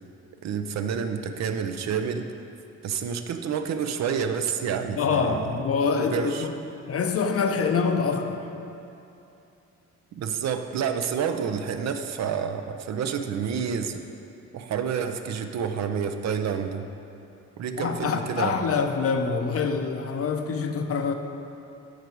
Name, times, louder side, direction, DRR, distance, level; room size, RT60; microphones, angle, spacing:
voice 1, 0.4-2.3 2.8-5.5 5.9-6.5 10.1-14.0 14.5-16.9 17.6-18.6, right 7 dB, 60° right, 7 dB, 0.6 m, -29 dB
voice 2, 5.0-6.5 6.9-8.5 17.8-21.1, left 5 dB, 50° left, 5 dB, 0.8 m, -25 dB
13.0 x 4.8 x 4.6 m, 2.8 s
cardioid pair, 90°, 30 cm